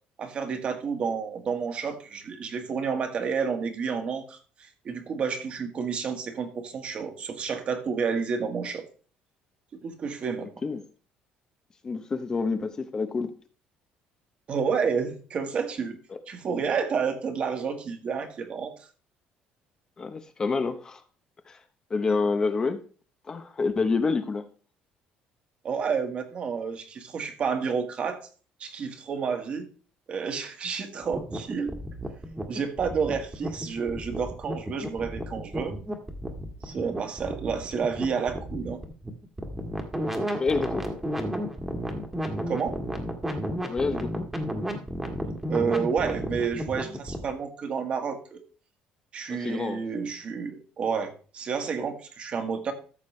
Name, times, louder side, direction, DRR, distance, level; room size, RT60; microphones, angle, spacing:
voice 1, 0.2-8.8 9.8-10.5 14.5-16.0 16.3-18.7 25.6-28.2 28.6-29.7 30.1-31.7 32.5-35.7 36.6-38.8 42.5-42.8 45.5-48.4 49.1-52.7, right 6 dB, 40° right, 1.6 m, -30 dB
voice 2, 11.8-13.3 16.1-16.2 20.0-21.0 21.5-21.6 21.9-22.8 23.3-24.5 40.3-40.9 43.7-44.3 49.3-49.8, left 4 dB, 25° left, 0.8 m, -28 dB
sound 1, 31.0-47.3, equal, 10° right, 1.6 m, -33 dB
14.0 x 6.6 x 3.2 m
cardioid pair, 145°, 3 cm